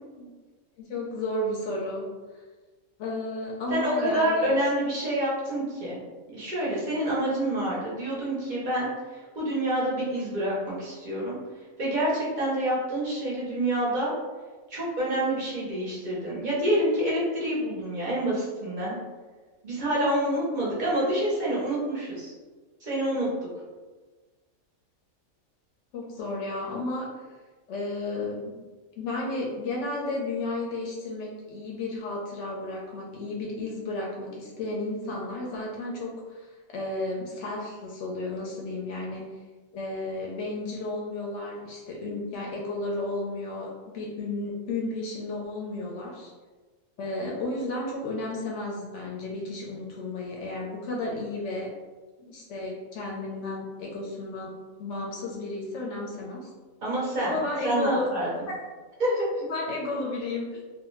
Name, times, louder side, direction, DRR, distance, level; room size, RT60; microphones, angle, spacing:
voice 1, 0.8-2.1 3.0-4.5 25.9-27.1 27.7-28.6 29.0-39.3 39.7-46.3 47.0-51.7 52.2-54.5 54.8-56.5 57.2-58.1 59.4-60.6, left 2 dB, 65° left, -2 dB, 0.8 m, -33 dB
voice 2, 3.7-6.0 6.3-11.4 11.8-14.1 14.7-19.0 19.6-22.3 22.8-23.3 56.8-57.4 57.6-58.3 59.0-59.5, right 1 dB, 45° right, -6 dB, 0.6 m, -27 dB
2.5 x 2.2 x 3.0 m, 1.3 s
omnidirectional pair, 1.4 m